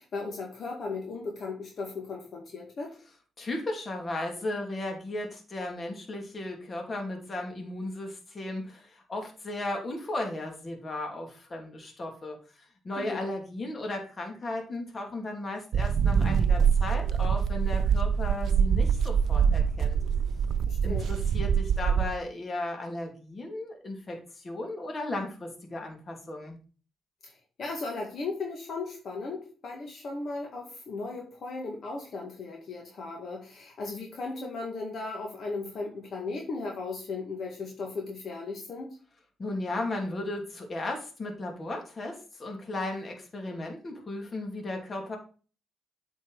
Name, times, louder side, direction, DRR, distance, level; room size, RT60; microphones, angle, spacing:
voice 1, 0.0-2.9 13.0-13.2 20.7-21.1 27.2-27.3 27.6-39.0, left 3 dB, 55° left, 0 dB, 1.8 m, -36 dB
voice 2, 3.4-12.4 12.8-20.0 20.8-26.6 39.4-45.2, left 2 dB, 35° left, 2 dB, 2.5 m, -35 dB
sound 1, 15.7-22.2, right 7 dB, 60° right, 0.4 m, -24 dB
8.2 x 4.7 x 4.7 m, 0.38 s
cardioid pair, 90°, 0 cm